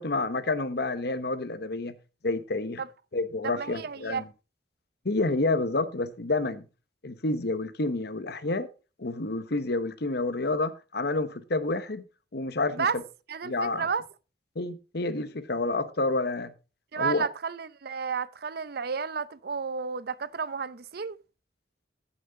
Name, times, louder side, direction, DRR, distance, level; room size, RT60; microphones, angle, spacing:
voice 1, 0.0-1.9 2.2-2.8 3.1-4.2 5.0-6.7 7.0-8.7 9.0-12.0 12.3-13.0 13.4-13.9 14.5-16.5 16.9-17.3, left 2 dB, 60° left, 1.1 m, -29 dB
voice 2, 3.4-4.3 12.7-13.0 13.3-14.0 16.9-21.2, right 5 dB, 60° right, 0.6 m, -32 dB
14.5 x 6.4 x 3.6 m
head